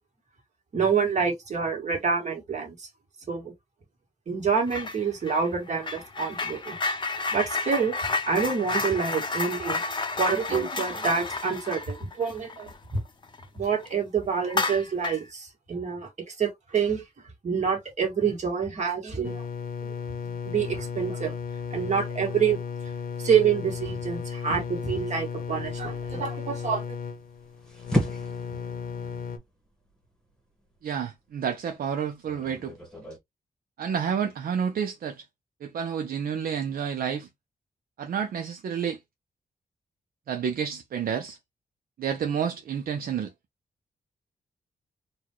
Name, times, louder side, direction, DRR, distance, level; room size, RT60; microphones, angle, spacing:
voice 1, 0.7-2.9 3.3-3.5 4.3-6.8 7.3-7.9 8.3-9.8 10.2-13.0 13.5-17.0 17.4-19.4 19.8-19.9 20.2-21.3 21.7-22.6 23.2-26.8, right 6 dB, 50° right, 1.5 m, -27 dB
sound 1, 4.7-5.0 5.3-13.4 13.8-13.9 14.4-15.3, left 3 dB, 30° left, 0.6 m, -31 dB
sound 2, 19.2-29.4, left 6 dB, 70° left, 0.8 m, -35 dB
sound 3, 27.2-33.2, equal, 5° left, 1.1 m, -36 dB
voice 2, 30.8-32.7 33.8-35.2 35.6-37.3 38.0-39.0 40.3-41.4 42.0-43.3, right 7 dB, 70° right, 0.6 m, -29 dB
4.1 x 2.3 x 2.9 m
wide cardioid pair, 125°, 16 cm